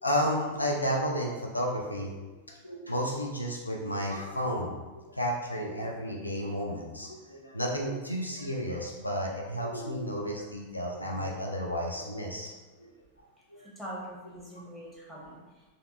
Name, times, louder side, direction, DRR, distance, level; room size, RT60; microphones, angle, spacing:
voice 1, 0.0-2.4 2.6-4.7 5.0-12.5 12.8-12.9 13.5-13.7, equal, 80° left, -1 dB, 0.5 m, -32 dB
voice 2, 13.6-15.7, equal, 10° left, -5 dB, 1.3 m, -43 dB
5.2 x 2.8 x 2.6 m, 1.2 s
figure-of-eight pair, 90°, 0 cm